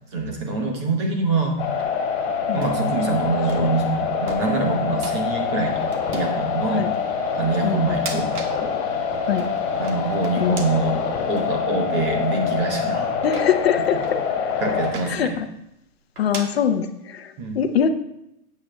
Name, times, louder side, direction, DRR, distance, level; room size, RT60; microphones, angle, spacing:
voice 1, 0.1-1.6 2.5-6.9 7.3-8.4 9.8-13.2 13.9-14.0 14.6-15.3 17.4-17.6, right 3 dB, 20° right, 2 dB, 0.9 m, -25 dB
sound 1, 0.9-1.9 2.5-2.8 3.5-3.8 4.3-4.6 5.0-5.2 5.9-6.3 6.9-7.0 7.8-8.6 9.0-10.9 11.4-11.5 12.2-12.4 13.1-14.1 14.8-15.2 16.2-16.5, right 3 dB, 75° right, 1.8 m, -37 dB
sound 2, 1.6-14.9, left 6 dB, 25° left, 2.2 m, -25 dB
voice 2, 7.6-8.0 9.2-9.5 10.4-10.7 13.2-14.0 15.1-15.5 16.2-17.9, left 8 dB, 45° left, 8 dB, 0.7 m, -23 dB
13.5 x 8.5 x 2.2 m, 0.84 s
hypercardioid pair, 165°, 45 cm